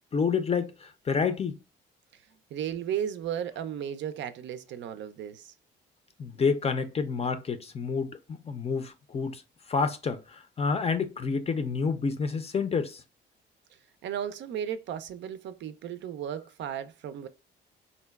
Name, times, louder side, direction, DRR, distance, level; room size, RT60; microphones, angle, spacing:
voice 1, 0.0-1.6 6.2-9.4 9.7-13.0, left 5 dB, 30° left, 0.5 m, -29 dB
voice 2, 2.5-5.5 14.0-17.3, right 9 dB, 65° right, 0.4 m, -35 dB
3.8 x 2.1 x 2.2 m
cardioid pair, 90°, 20 cm